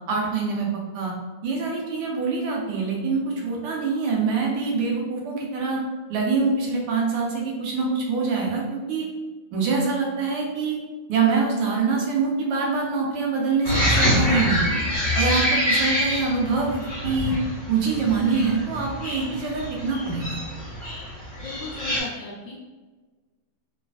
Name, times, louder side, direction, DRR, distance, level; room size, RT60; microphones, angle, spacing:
voice 1, 0.1-1.1 1.4-5.8 6.1-9.1 9.5-10.8 11.1-14.6 15.1-16.8 17.0-17.4 17.7-20.4, right 4 dB, 85° right, -2 dB, 1.7 m, -25 dB
sound 1, 13.6-22.0, equal, 10° right, 0.6 m, -25 dB
voice 2, 21.4-22.6, left 3 dB, 75° left, -3 dB, 1.0 m, -36 dB
3.3 x 3.1 x 2.3 m, 1.3 s
omnidirectional pair, 2.4 m